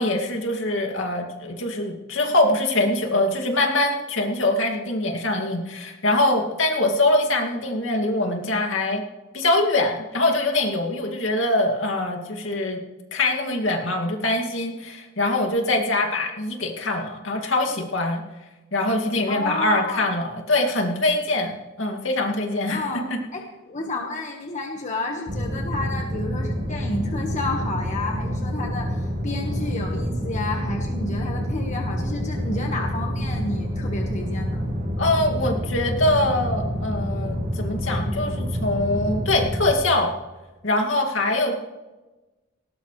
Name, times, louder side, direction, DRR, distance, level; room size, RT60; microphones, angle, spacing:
voice 1, 0.0-9.0 9.3-12.8 13.1-18.2 18.7-22.8 35.0-40.1 40.6-41.5, left 2 dB, 65° left, 1 dB, 2.4 m, -23 dB
voice 2, 19.3-20.1 22.7-23.1 23.3-34.7, left 2 dB, 35° left, 1 dB, 1.5 m, -30 dB
sound 1, 25.3-39.7, equal, 40° right, 1.9 m, -27 dB
19.0 x 18.0 x 3.3 m, 1.1 s
head